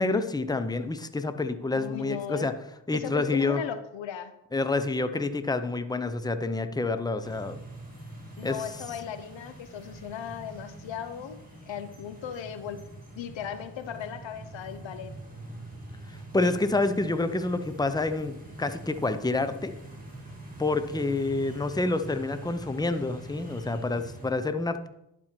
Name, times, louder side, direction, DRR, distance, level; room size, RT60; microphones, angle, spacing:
voice 1, 0.0-2.5 2.9-3.6 4.5-7.6 8.4-8.6 16.3-19.7 20.6-24.9, left 3 dB, 10° left, 10 dB, 0.7 m, -28 dB
voice 2, 1.7-2.5 2.9-4.3 8.4-11.4 11.7-12.8 13.2-15.1, left 8 dB, 80° left, 11 dB, 0.7 m, -37 dB
sound 1, 7.2-24.3, right 2 dB, 20° right, 2.8 m, -44 dB
11.5 x 4.5 x 4.4 m, 0.83 s
cardioid pair, 45°, 44 cm